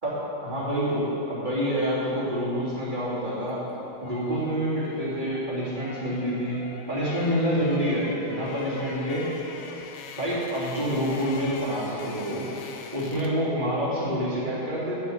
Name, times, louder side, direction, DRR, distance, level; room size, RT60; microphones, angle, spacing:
voice 1, 0.0-3.6 4.0-9.3 10.2-12.4 12.9-15.0, equal, 25° right, -9 dB, 3.2 m, -27 dB
sound 1, 3.5-13.5 13.8-14.0, left 5 dB, 65° left, 1.3 m, -43 dB
8.2 x 7.8 x 7.8 m, 3.0 s
omnidirectional pair, 2.2 m